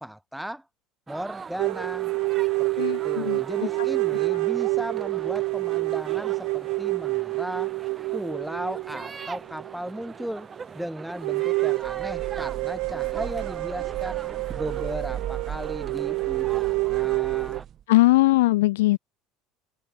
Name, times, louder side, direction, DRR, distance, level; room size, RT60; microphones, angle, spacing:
voice 1, 0.0-0.6 1.1-2.1 2.6-7.7 8.1-10.5 10.7-14.2 14.5-17.6, right 1 dB, 5° right, 2.5 m, -36 dB
sound 1, 1.1-17.6, right 5 dB, 25° right, 7.2 m, -42 dB
sound 2, 1.6-10.2 10.6-10.7 11.2-17.6, right 29 dB, 65° right, 1.2 m, -28 dB
voice 2, 2.8-3.9 17.9-19.0, left 18 dB, 80° left, 1.9 m, -21 dB
sound 3, 11.8-17.8, right 10 dB, 45° right, 7.5 m, -38 dB
open air
hypercardioid pair, 80°, 0 cm